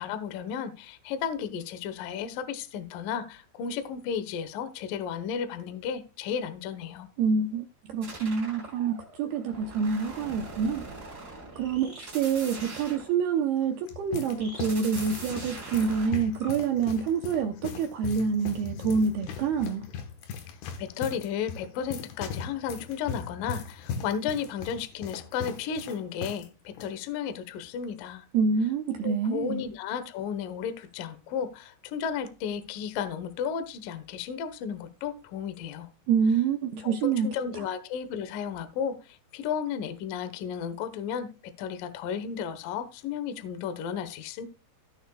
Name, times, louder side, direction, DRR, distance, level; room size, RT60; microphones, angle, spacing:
voice 1, 0.0-7.1 20.5-28.3 29.0-35.9 36.8-44.5, left 7 dB, 90° left, 1.9 m, -34 dB
voice 2, 7.2-10.9 11.6-19.9 28.3-29.6 36.1-37.3, right 6 dB, 85° right, 2.2 m, -27 dB
sound 1, 8.0-13.6 14.4-16.5, right 2 dB, 20° right, 3.3 m, -43 dB
sound 2, 13.6-26.5 26.7-26.9 27.6-27.9, left 6 dB, 70° left, 2.9 m, -39 dB
16.5 x 6.8 x 2.3 m
omnidirectional pair, 5.7 m